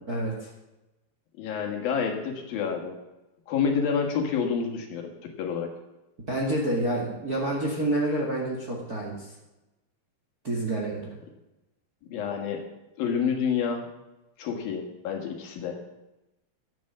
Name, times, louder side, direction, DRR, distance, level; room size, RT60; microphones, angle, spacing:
voice 1, 0.1-0.5 6.3-9.3 10.4-11.1, right 1 dB, 35° right, -2 dB, 1.6 m, -28 dB
voice 2, 1.4-3.0 3.5-5.7 12.1-12.6 13.0-13.9 14.4-15.8, left 6 dB, 70° left, 3 dB, 3.3 m, -28 dB
12.5 x 9.0 x 7.4 m, 1.0 s
omnidirectional pair, 4.5 m